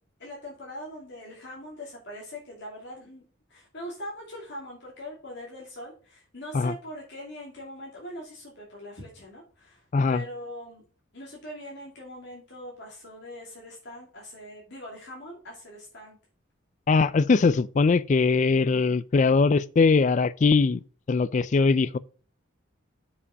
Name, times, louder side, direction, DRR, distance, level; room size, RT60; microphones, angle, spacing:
voice 1, 0.2-3.2 3.5-10.8 11.1-16.2, equal, 55° left, 2.6 m, -42 dB
voice 2, 9.9-10.2 16.9-20.8 21.1-22.0, left 4 dB, 35° left, 0.3 m, -21 dB
7.0 x 5.2 x 4.9 m
head